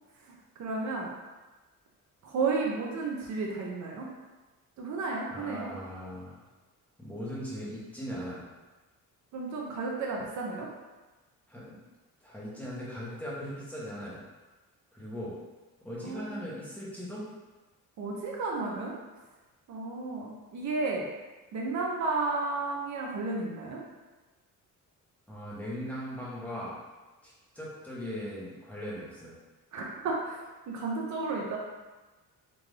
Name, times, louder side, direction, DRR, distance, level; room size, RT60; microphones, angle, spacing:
voice 1, 0.3-1.1 2.2-4.1 4.8-5.7 9.3-10.7 16.0-16.6 18.0-18.9 19.7-21.1 21.5-23.8 29.7-30.4 30.7-31.6, right 3 dB, 60° right, -2 dB, 0.6 m, -32 dB
voice 2, 5.3-6.4 7.0-8.4 11.5-11.8 12.2-14.2 14.9-15.3 15.8-17.3 25.3-26.7 27.2-29.3, equal, 5° left, -8 dB, 1.0 m, -39 dB
3.7 x 2.5 x 3.2 m, 1.2 s
cardioid pair, 135°, 32 cm